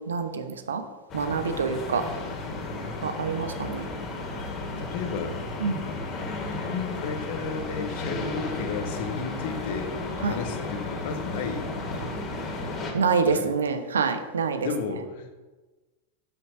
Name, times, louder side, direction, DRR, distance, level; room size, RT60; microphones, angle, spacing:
voice 1, 0.1-0.8 1.1-2.0 3.0-3.9 5.6-5.9 10.2-10.4 12.9-14.7, right 5 dB, 70° right, 9 dB, 0.9 m, -26 dB
sound 1, 1.1-12.9, left 2 dB, 30° left, 2.2 m, -34 dB
voice 2, 4.8-5.4 5.8-9.9 10.2-11.7 13.2-13.5 14.6-15.3, left 5 dB, 50° left, 5 dB, 1.5 m, -33 dB
10.0 x 6.7 x 6.0 m, 1.2 s
figure-of-eight pair, 90°, 0 cm